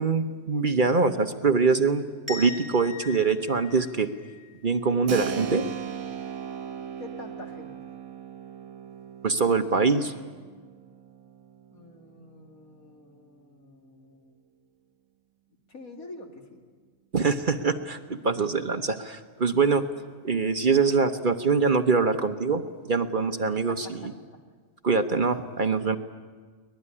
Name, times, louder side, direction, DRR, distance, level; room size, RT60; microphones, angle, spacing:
voice 1, 0.0-4.1 4.6-5.6 9.2-10.1 17.1-19.8 20.2-22.6 22.9-24.1 24.8-26.0, right 4 dB, 40° right, 7 dB, 1.0 m, -24 dB
sound 1, 2.3-5.0, left 4 dB, 15° right, 3.4 m, -41 dB
Keyboard (musical), 5.1-13.5, right 8 dB, 85° right, 1.5 m, -38 dB
voice 2, 7.0-7.8 11.7-14.3 15.7-16.6 18.3-18.4 19.6-19.8 23.7-24.1, left 2 dB, 85° left, 2 dB, 3.0 m, -46 dB
23.5 x 20.0 x 9.8 m, 1.5 s
omnidirectional pair, 1.5 m